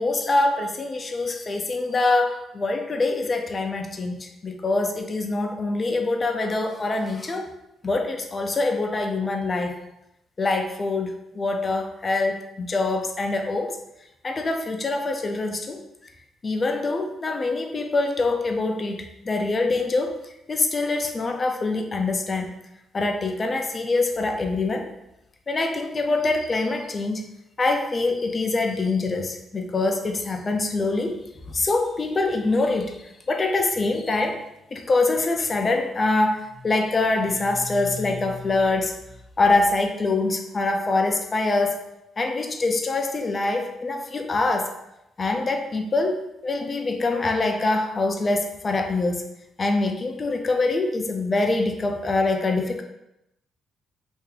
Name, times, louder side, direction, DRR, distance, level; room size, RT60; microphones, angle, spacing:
voice 1, 0.0-7.5 7.8-9.7 10.4-13.7 14.2-15.8 16.4-20.1 20.5-22.5 22.9-24.9 25.5-27.2 27.6-31.2 31.5-33.0 33.3-34.4 34.7-38.9 39.4-41.8 42.2-44.7 45.2-46.2 46.4-49.2 49.6-52.8, left 3 dB, 30° left, 4 dB, 0.5 m, -24 dB
2.8 x 2.5 x 3.8 m, 0.86 s
cardioid pair, 90°, 0 cm